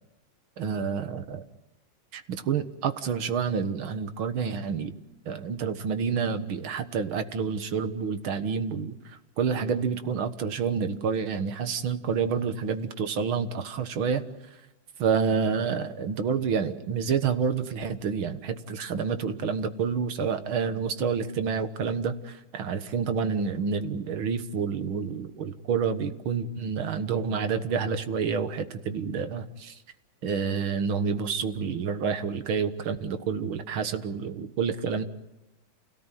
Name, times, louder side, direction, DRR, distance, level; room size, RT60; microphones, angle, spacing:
voice 1, 0.6-1.4 2.1-4.9 5.3-14.2 15.0-29.8 30.2-35.0, right 6 dB, 80° right, 10 dB, 2.2 m, -28 dB
28.5 x 17.5 x 9.2 m, 0.98 s
omnidirectional pair, 2.2 m